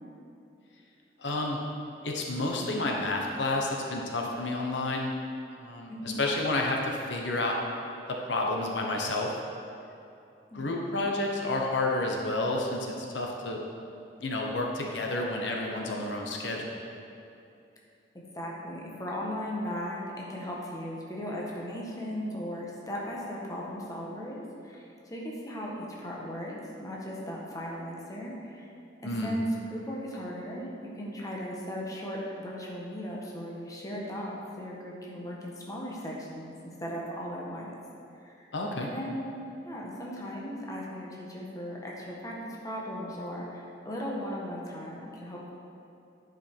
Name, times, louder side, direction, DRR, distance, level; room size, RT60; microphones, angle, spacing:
voice 1, 1.2-1.6 2.0-5.1 5.6-7.6 8.1-9.3 10.5-13.6 14.2-16.8 29.0-29.3 38.5-38.9, left 2 dB, 80° left, 0 dB, 1.0 m, -30 dB
voice 2, 5.9-6.2 10.5-10.7 18.1-28.7 29.0-37.7 38.2-38.5 38.8-45.5, equal, 20° left, -4 dB, 1.2 m, -37 dB
10.0 x 5.3 x 4.5 m, 2.7 s
head